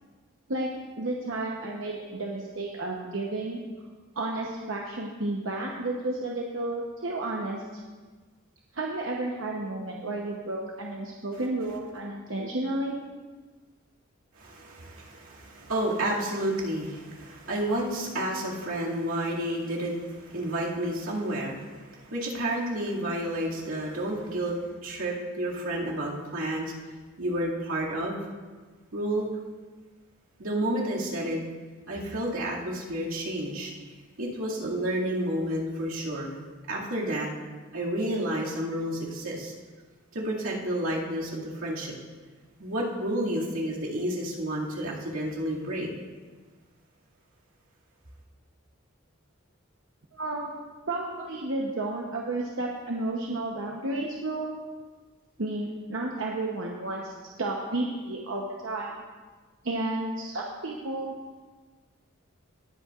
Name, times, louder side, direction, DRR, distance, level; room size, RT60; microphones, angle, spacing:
voice 1, 1.0-3.6 4.2-7.8 8.7-12.9 50.1-50.5 50.9-54.5 55.4-59.0 59.6-61.1, right 2 dB, 65° right, -1 dB, 0.9 m, -32 dB
voice 2, 14.4-26.7 27.2-28.2 28.9-29.3 30.4-31.4 31.9-33.7 34.2-36.3 36.7-37.3 37.7-39.5 40.1-41.9 42.6-45.9, right 1 dB, 90° right, -4 dB, 2.3 m, -30 dB
19.0 x 8.3 x 2.5 m, 1.4 s
head